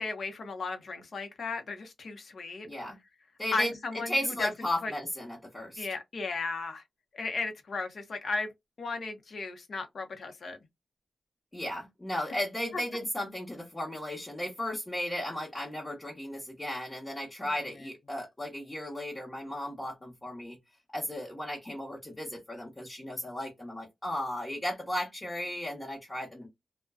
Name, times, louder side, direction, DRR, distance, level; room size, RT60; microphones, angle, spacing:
voice 1, 0.0-2.7 3.5-4.5 4.8-4.9 5.8-6.8 7.1-8.5 8.8-10.6 12.7-12.8, left 3 dB, 60° left, 0.7 m, -35 dB
voice 2, 2.6-3.0 3.4-3.7 4.1-5.9 11.5-20.6 20.9-26.5, left 1 dB, 20° left, 1.0 m, -35 dB
2.5 x 2.1 x 2.3 m
wide cardioid pair, 100°, 0 cm